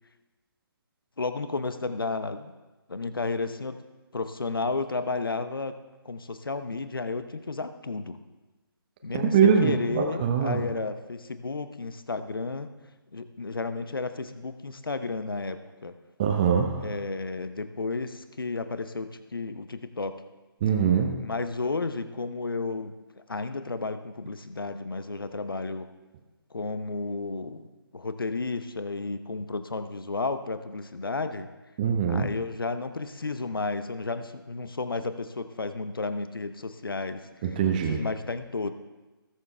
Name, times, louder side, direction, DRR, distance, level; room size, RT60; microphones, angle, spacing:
voice 1, 1.2-2.5 2.9-3.8 4.1-5.7 6.0-8.2 9.0-12.7 13.1-15.9 16.8-20.2 21.2-25.9 26.5-27.7 27.9-31.5 32.1-38.7, left 3 dB, 65° left, 10 dB, 0.9 m, -32 dB
voice 2, 9.2-10.6 16.2-16.8 20.6-21.3 31.8-32.3 37.4-38.0, right 7 dB, 20° right, 2 dB, 0.8 m, -23 dB
19.0 x 7.2 x 3.4 m, 1.2 s
figure-of-eight pair, 145°, 13 cm